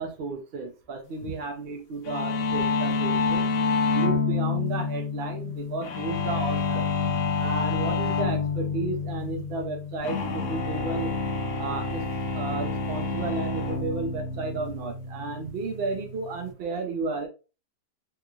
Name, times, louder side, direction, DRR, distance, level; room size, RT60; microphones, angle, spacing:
voice 1, 0.0-3.4 3.9-6.8 7.4-11.1 11.6-12.0 12.3-17.3, right 3 dB, 75° right, 3 dB, 0.5 m, -33 dB
sound 1, 2.1-16.5, left 4 dB, 65° left, 1.0 m, -28 dB
3.4 x 3.0 x 2.3 m, 0.32 s
omnidirectional pair, 1.8 m